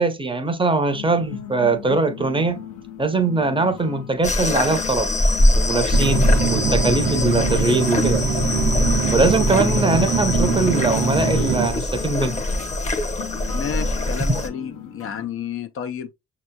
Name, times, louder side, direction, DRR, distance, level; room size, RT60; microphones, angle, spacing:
voice 1, 0.0-2.6 3.0-5.1 5.6-8.2 9.1-12.4 14.3-14.4, right 3 dB, 15° right, 0.7 m, -21 dB
sound 1, 0.9-15.3, left 9 dB, 80° left, 1.0 m, -37 dB
sound 2, 4.2-14.5, left 1 dB, 25° left, 0.8 m, -22 dB
sound 3, 5.9-11.7, right 4 dB, 70° right, 0.8 m, -23 dB
voice 2, 13.5-16.1, left 8 dB, 45° left, 0.4 m, -31 dB
6.0 x 2.9 x 2.2 m
cardioid pair, 90°, 30 cm